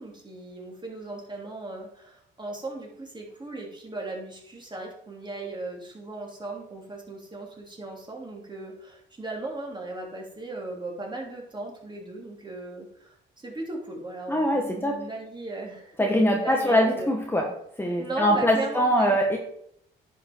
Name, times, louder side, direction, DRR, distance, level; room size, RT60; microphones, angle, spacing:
voice 1, 0.0-17.1 18.0-19.2, right 2 dB, 20° right, -1 dB, 3.1 m, -37 dB
voice 2, 14.3-15.0 16.0-17.5 17.8-19.4, equal, 10° left, 1 dB, 1.3 m, -23 dB
10.0 x 5.9 x 4.6 m, 0.71 s
cardioid pair, 90°, 20 cm